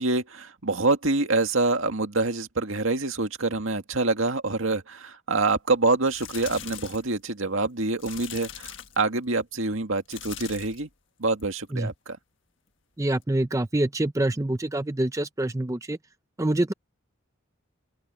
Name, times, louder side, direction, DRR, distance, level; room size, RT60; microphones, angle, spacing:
voice 1, 0.0-10.9 11.2-12.2, right 3 dB, 75° right, 2.0 m, -26 dB
sound 1, 5.9-7.1 8.0-9.1 10.0-10.9 11.3-11.6 13.2-13.3, left 10 dB, 65° left, 1.5 m, -41 dB
voice 2, 13.0-16.0 16.4-16.7, right 1 dB, 15° right, 0.5 m, -26 dB
open air
head